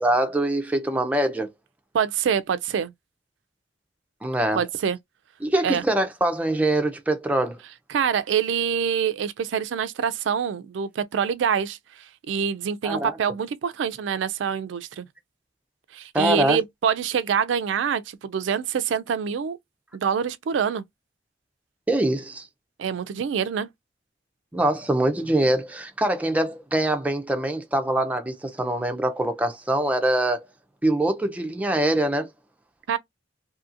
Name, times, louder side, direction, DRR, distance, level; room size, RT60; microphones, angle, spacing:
voice 1, 0.0-1.5 4.2-4.6 5.4-7.6 12.8-13.2 16.1-16.6 21.9-22.5 24.5-30.5 30.8-32.3, right 1 dB, 10° right, 0.4 m, -23 dB
voice 2, 1.9-2.9 4.6-5.0 5.6-5.8 7.9-15.1 15.9-19.6 19.9-20.8 22.8-23.7 32.9-33.0, right 7 dB, 85° right, 0.3 m, -25 dB
2.7 x 2.6 x 2.5 m
head